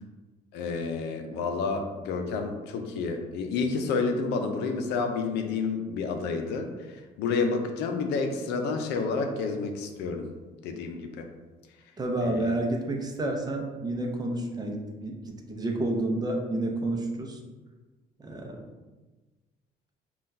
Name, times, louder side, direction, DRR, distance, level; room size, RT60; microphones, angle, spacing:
voice 1, 0.5-6.7 7.2-10.3 10.6-11.3 12.2-12.5, left 4 dB, 85° left, 4 dB, 0.5 m, -29 dB
voice 2, 12.0-17.4 18.2-18.6, right 1 dB, 25° right, 1 dB, 0.6 m, -30 dB
5.6 x 2.3 x 2.6 m, 1.2 s
cardioid pair, 110°, 17 cm